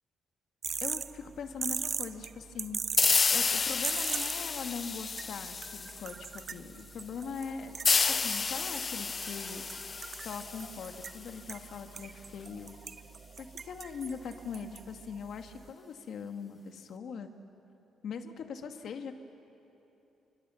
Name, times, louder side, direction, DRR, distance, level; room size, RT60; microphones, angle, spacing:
sound 1, 0.6-15.7, right 6 dB, 45° right, 0.8 m, -41 dB
voice 1, 0.8-9.7 10.2-12.7 13.4-17.3 18.0-19.1, left 6 dB, 65° left, 5 dB, 2.2 m, -41 dB
sound 2, 3.0-6.4 7.8-11.3, left 4 dB, 35° left, 0.6 m, -30 dB
29.0 x 25.5 x 7.2 m, 3.0 s
cardioid pair, 90°, 0 cm